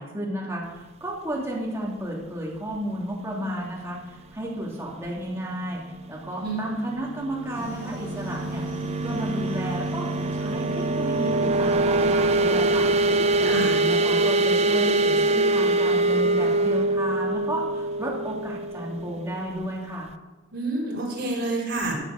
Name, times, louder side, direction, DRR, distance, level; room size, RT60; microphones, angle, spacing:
voice 1, 0.0-5.8 6.1-8.6 9.0-10.1 10.4-12.9 13.4-20.1, right 1 dB, 15° right, -4 dB, 2.9 m, -32 dB
sound 1, 7.2-19.7, right 2 dB, 30° right, 0.4 m, -24 dB
sound 2, 7.5-13.5, left 3 dB, 50° left, 5.3 m, -39 dB
voice 2, 13.4-13.8 20.5-21.9, right 2 dB, 60° right, -3 dB, 4.5 m, -28 dB
13.5 x 7.5 x 6.6 m, 1.2 s
head